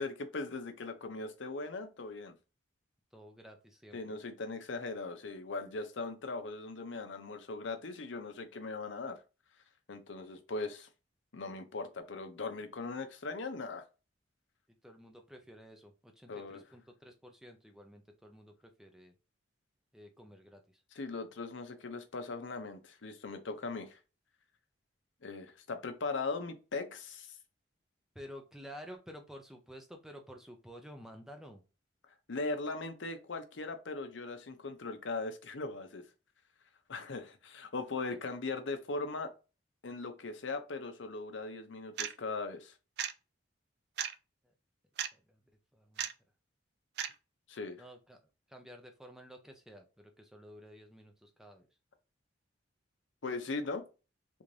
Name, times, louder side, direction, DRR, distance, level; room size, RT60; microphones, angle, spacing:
voice 1, 0.0-2.3 3.9-9.2 9.9-10.9 11.3-13.8 16.3-16.6 21.0-24.0 25.2-27.4 32.3-36.0 36.9-39.3 39.8-42.7 47.5-47.8 53.2-53.8, left 3 dB, 70° left, 0.6 m, -39 dB
voice 2, 3.1-4.2 14.8-19.1 19.9-20.8 28.1-31.6 38.1-38.2 44.4-44.5 45.1-45.4 45.7-46.1 47.8-48.2 48.5-51.7, equal, ahead, 0.5 m, -52 dB
sound 1, 42.0-42.1 43.0-43.1 44.0-44.1 45.0-45.1 46.0-46.1 47.0-47.1, right 9 dB, 55° right, 0.3 m, -34 dB
3.5 x 2.6 x 3.2 m
head